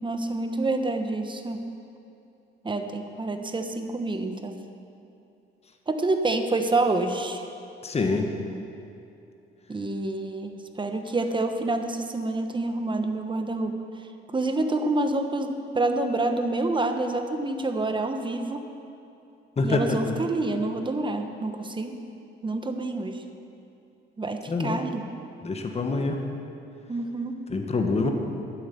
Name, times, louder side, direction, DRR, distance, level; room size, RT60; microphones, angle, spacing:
voice 1, 0.0-1.6 2.6-4.6 5.9-7.4 9.7-13.8 14.3-18.6 19.6-22.0 22.4-23.2 24.2-25.1 26.9-27.3, right 2 dB, 25° right, 6 dB, 1.1 m, -27 dB
voice 2, 7.8-8.3 19.6-20.2 24.5-24.8 25.4-26.2 27.5-28.1, left 3 dB, 30° left, 4 dB, 1.4 m, -25 dB
11.5 x 9.5 x 7.0 m, 2.7 s
cardioid pair, 90°, 20 cm